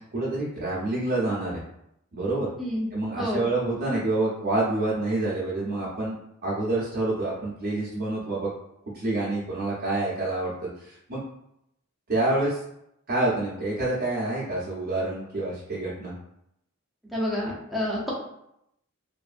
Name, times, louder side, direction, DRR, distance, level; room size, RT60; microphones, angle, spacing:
voice 1, 0.0-1.6 2.1-2.5 2.9-6.1 6.4-8.5 8.9-11.2 12.1-12.6 13.1-16.1, right 2 dB, 50° right, -8 dB, 0.6 m, -27 dB
voice 2, 17.1-18.1, left 1 dB, ahead, -5 dB, 0.6 m, -28 dB
2.6 x 2.4 x 2.5 m, 0.78 s
head